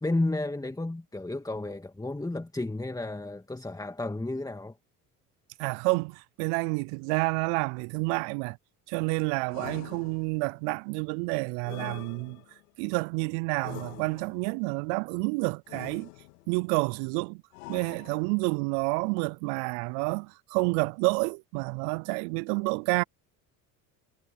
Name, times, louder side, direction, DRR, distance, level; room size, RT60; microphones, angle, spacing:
voice 1, 0.0-4.8, left 2 dB, 10° left, 2.3 m, -32 dB
voice 2, 5.6-8.6 8.9-12.4 12.8-16.1 16.5-17.4 17.7-23.0, right 32 dB, 70° right, 0.6 m, -29 dB
sound 1, 9.5-10.6 11.6-12.7 13.6-14.5 15.7-16.6 17.5-18.5, left 22 dB, 80° left, 2.7 m, -45 dB
hypercardioid pair, 70°, 43 cm